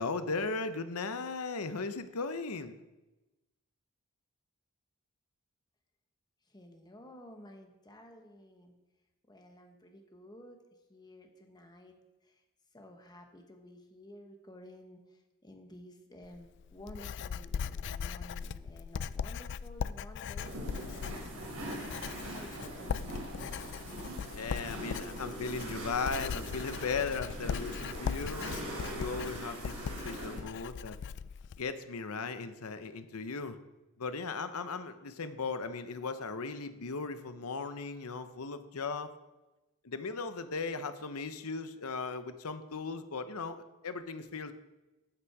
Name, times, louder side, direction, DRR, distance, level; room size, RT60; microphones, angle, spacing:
voice 1, 0.0-2.8 24.3-28.6 29.0-31.0 31.6-33.6 34.0-39.1 39.8-44.5, left 4 dB, 70° left, 10 dB, 0.8 m, -37 dB
voice 2, 6.5-8.7 9.3-10.6 10.9-12.0 12.7-15.0 15.4-20.6 20.9-21.5 21.8-23.1, left 1 dB, 20° left, 4 dB, 1.2 m, -53 dB
Writing, 16.2-31.6, left 7 dB, 55° left, 0.3 m, -39 dB
sound 1, 20.4-30.4, right 1 dB, 85° right, 4.3 m, -42 dB
14.0 x 6.1 x 4.8 m, 1.1 s
head